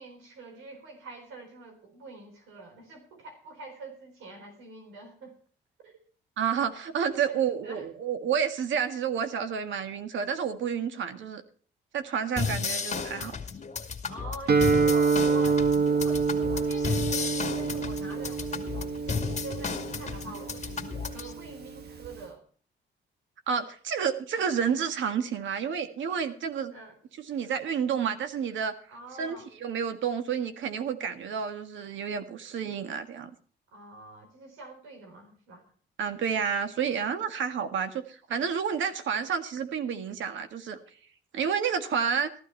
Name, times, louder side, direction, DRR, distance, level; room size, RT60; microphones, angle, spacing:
voice 1, 0.0-5.3 5.8-6.0 7.3-7.9 14.1-22.4 26.7-26.9 28.9-29.5 33.7-35.6, right 3 dB, 85° right, 4 dB, 4.1 m, -45 dB
voice 2, 6.4-11.4 11.9-13.3 23.5-26.7 27.2-28.7 29.2-33.3 36.0-40.8 41.3-42.3, right 7 dB, 70° right, 9 dB, 1.7 m, -30 dB
sound 1, 12.4-21.3, left 5 dB, 35° left, 2.2 m, -33 dB
Guitar, 14.5-22.2, right 5 dB, 55° right, 1.5 m, -27 dB
14.5 x 12.5 x 4.4 m, 0.43 s
cardioid pair, 90°, 20 cm